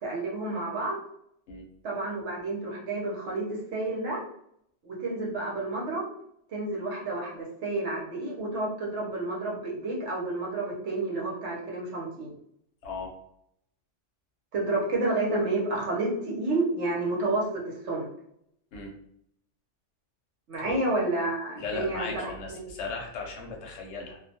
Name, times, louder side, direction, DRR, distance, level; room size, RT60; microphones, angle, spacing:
voice 1, 0.0-1.0 1.8-3.4 3.7-4.2 4.8-6.1 6.5-12.3 14.5-17.4 17.8-18.1 20.5-22.7, right 2 dB, 70° right, -3 dB, 1.1 m, -30 dB
voice 2, 21.5-24.2, left 4 dB, 70° left, 1 dB, 0.9 m, -37 dB
2.5 x 2.2 x 2.7 m, 0.72 s
omnidirectional pair, 1.2 m